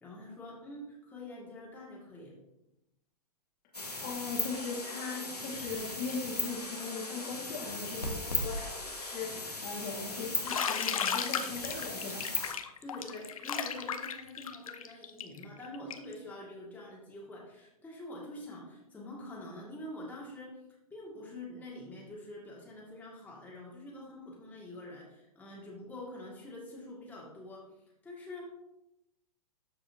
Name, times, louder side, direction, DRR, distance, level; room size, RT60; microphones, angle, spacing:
voice 1, 0.0-2.3 12.8-20.5 20.9-27.6 28.0-28.5, left 1 dB, 10° left, -5 dB, 1.8 m, -46 dB
sound 1, 3.7-12.5, left 2 dB, 90° left, 1.5 m, -37 dB
voice 2, 4.0-8.7 9.0-12.2, left 4 dB, 35° left, -3 dB, 1.8 m, -39 dB
Bathtub (filling or washing), 10.5-16.1, left 7 dB, 60° left, 0.6 m, -35 dB
13.0 x 4.8 x 2.7 m, 0.91 s
figure-of-eight pair, 105°, 20 cm